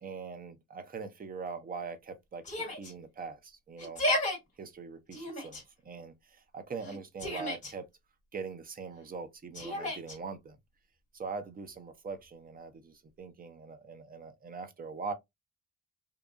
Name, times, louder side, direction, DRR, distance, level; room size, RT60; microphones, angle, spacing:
voice 1, 0.0-2.4 2.7-4.0 4.6-7.9 8.3-10.6 11.1-15.1, right 4 dB, 30° right, 0.5 m, -42 dB
Yell, 2.4-2.9 3.8-4.4 5.1-5.6 6.8-7.7 9.5-10.2, left 1 dB, 25° left, 1.2 m, -33 dB
2.8 x 2.2 x 2.4 m
wide cardioid pair, 150°, 29 cm